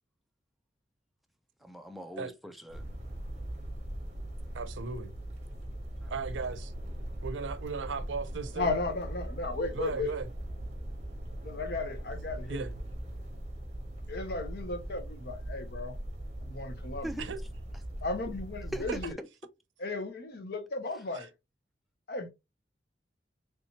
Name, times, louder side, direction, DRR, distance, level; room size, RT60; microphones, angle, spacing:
voice 1, 1.6-2.8 6.0-6.1 17.0-17.3 18.7-19.3, right 1 dB, ahead, 0.3 m, -40 dB
sound 1, 2.7-19.1, right 1 dB, 35° right, 0.9 m, -40 dB
voice 2, 4.5-5.1 6.1-6.7 7.2-8.7 9.7-10.3 12.5-12.7 17.2-17.4 21.1-21.3, right 4 dB, 85° right, 0.5 m, -36 dB
voice 3, 8.5-10.1 11.4-12.7 14.1-16.0 16.4-17.2 18.0-19.1 19.8-21.3 22.1-22.3, left 3 dB, 60° left, 0.7 m, -35 dB
3.4 x 2.8 x 2.8 m
head